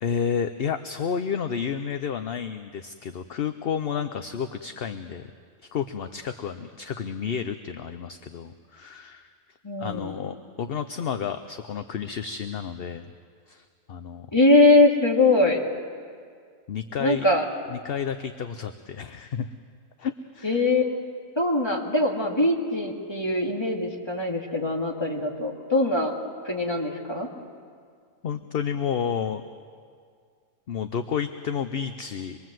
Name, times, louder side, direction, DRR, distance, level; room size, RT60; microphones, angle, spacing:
voice 1, 0.0-5.3 5.6-9.3 9.8-13.1 13.5-14.3 16.7-17.2 17.7-19.5 20.0-20.6 28.2-29.4 30.7-32.4, left 7 dB, 55° left, 9 dB, 0.9 m, -31 dB
voice 2, 9.6-10.1 14.3-15.6 17.0-17.5 20.4-20.9 21.4-26.2 26.4-27.3, left 2 dB, 20° left, -1 dB, 2.5 m, -22 dB
25.5 x 22.0 x 7.7 m, 2.1 s
omnidirectional pair, 1.3 m